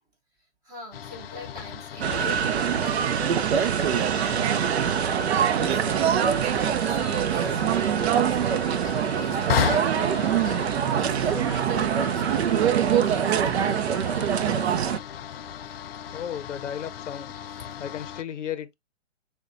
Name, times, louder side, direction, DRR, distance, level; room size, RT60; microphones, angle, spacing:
voice 1, 0.6-10.7 11.0-15.0, equal, 10° right, 0.7 m, -42 dB
sound 1, 0.9-18.2, left 8 dB, 55° left, 0.5 m, -36 dB
sound 2, 2.0-15.0, right 9 dB, 65° right, 0.6 m, -24 dB
voice 2, 16.1-17.3 17.8-18.7, left 9 dB, 85° left, 0.7 m, -34 dB
6.4 x 2.2 x 2.5 m
hypercardioid pair, 150°, 36 cm